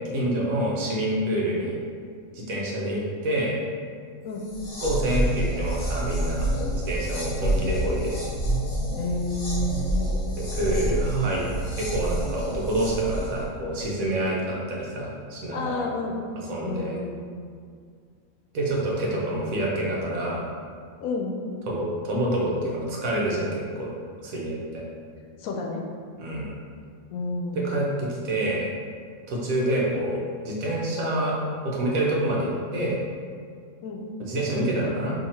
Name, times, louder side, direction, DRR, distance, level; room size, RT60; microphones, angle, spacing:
voice 1, 0.1-1.8 2.3-3.5 4.8-6.5 6.7-8.2 10.4-11.5 11.8-15.8 16.5-16.9 18.5-20.4 21.7-23.9 24.2-24.8 26.2-26.5 27.6-28.6 29.3-31.3 31.6-33.0 34.3-35.1, right 1 dB, 80° right, -4 dB, 1.2 m, -27 dB
sound 1, 4.4-13.5, right 1 dB, 60° left, 1.0 m, -28 dB
voice 2, 9.0-10.5 15.5-16.2 16.6-17.2 19.1-19.6 21.0-21.4 25.4-25.9 27.1-27.6 33.8-34.0, left 2 dB, 85° left, 0 dB, 1.0 m, -31 dB
2.8 x 2.8 x 4.2 m, 2.1 s
omnidirectional pair, 1.4 m